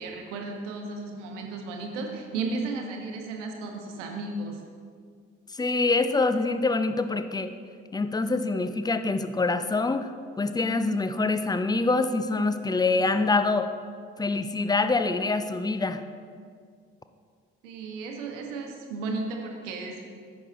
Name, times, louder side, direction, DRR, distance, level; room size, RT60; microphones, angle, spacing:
voice 1, 0.0-4.6 17.6-20.0, right 3 dB, 80° right, 2 dB, 1.0 m, -34 dB
voice 2, 5.5-7.5 7.9-10.1 10.4-13.7 14.2-16.0, left 3 dB, 10° left, 10 dB, 0.5 m, -25 dB
9.8 x 6.1 x 4.0 m, 2.1 s
figure-of-eight pair, 40°, 36 cm